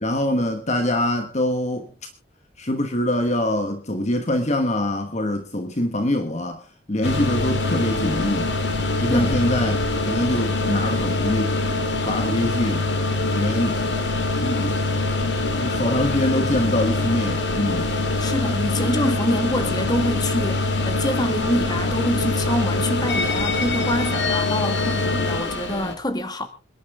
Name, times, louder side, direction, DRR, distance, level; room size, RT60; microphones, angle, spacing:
voice 1, 0.0-1.9 2.6-6.6 6.9-8.5 9.0-11.6 12.0-12.9 13.3-14.0 14.4-15.0 15.5-17.9, left 1 dB, 35° left, 1.3 m, -24 dB
sound 1, 7.0-25.9, left 2 dB, 65° left, 2.3 m, -24 dB
voice 2, 18.2-26.5, left 1 dB, 20° left, 1.7 m, -26 dB
26.5 x 11.0 x 3.6 m
head